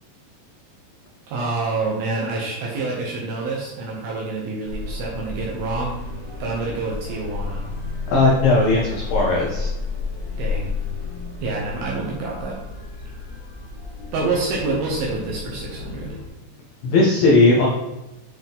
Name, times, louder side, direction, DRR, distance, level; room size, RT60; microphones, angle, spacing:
voice 1, 1.3-6.0 6.4-7.7 10.4-10.7 11.4-12.6 14.1-16.2, right 3 dB, 85° right, -3 dB, 2.1 m, -27 dB
sound 1, 4.6-16.3, left 4 dB, 50° left, 2.0 m, -32 dB
voice 2, 8.1-9.7 16.8-17.7, left 2 dB, 85° left, -4 dB, 2.0 m, -17 dB
9.6 x 3.9 x 3.5 m, 1.0 s
omnidirectional pair, 5.6 m